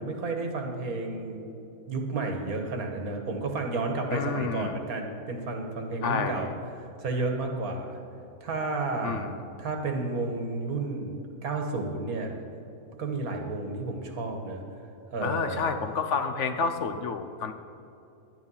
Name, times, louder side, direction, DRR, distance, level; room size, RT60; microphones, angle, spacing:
voice 1, 0.0-1.4 1.9-6.5 7.0-8.0 8.4-12.4 13.0-14.6 15.1-15.8, right 3 dB, 80° right, 3 dB, 1.8 m, -32 dB
voice 2, 4.1-4.8 6.0-6.4 9.0-9.3 15.2-17.5, left 5 dB, 60° left, 8 dB, 0.9 m, -29 dB
10.5 x 10.5 x 5.6 m, 2.8 s
omnidirectional pair, 1.5 m